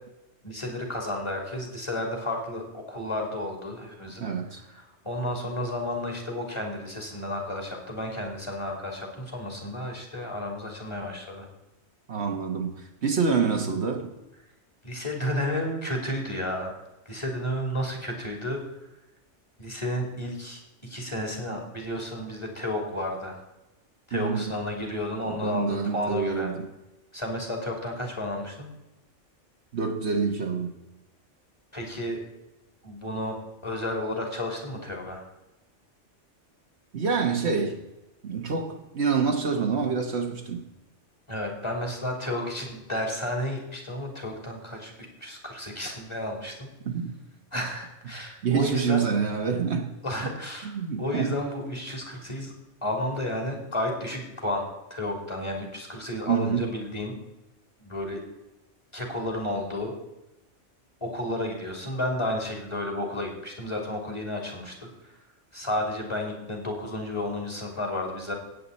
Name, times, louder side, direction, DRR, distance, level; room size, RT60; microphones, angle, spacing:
voice 1, 0.4-4.2 4.7-11.5 14.8-16.7 17.0-18.6 19.6-23.4 24.1-26.5 27.1-28.7 31.7-32.2 32.8-35.2 41.3-44.9 45.2-46.7 47.5-49.0 50.0-50.7 51.0-52.5 52.8-54.6 54.9-57.1 57.8-58.2 58.9-59.9 61.0-65.1 65.5-68.3, left 1 dB, 25° left, 3.2 m, -32 dB
voice 2, 4.2-4.6 12.1-14.1 24.1-24.5 25.3-26.7 29.7-30.7 36.9-37.8 38.2-40.6 46.8-47.1 48.4-49.9 50.6-51.3 56.3-56.7, right 5 dB, 60° right, 1.4 m, -27 dB
17.0 x 8.4 x 4.2 m
omnidirectional pair, 1.3 m